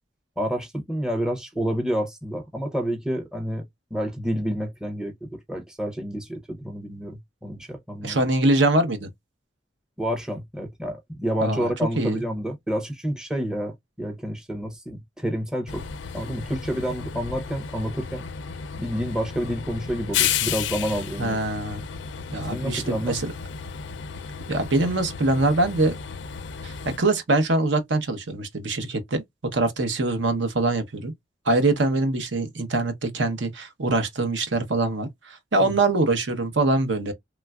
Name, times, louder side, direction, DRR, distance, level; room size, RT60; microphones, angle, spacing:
voice 1, 0.4-3.7 3.9-8.2 10.0-15.8 16.1-18.2 18.8-21.4 22.4-23.1 35.6-35.7, equal, 5° right, 0.6 m, -29 dB
voice 2, 8.0-9.1 11.4-12.2 21.2-21.8 22.3-23.3 24.5-25.9 26.6-29.2 29.5-31.1 31.4-37.1, right 2 dB, 70° right, 0.8 m, -23 dB
Train, 15.7-27.0, left 8 dB, 70° left, 0.4 m, -32 dB
3.1 x 2.3 x 2.2 m
head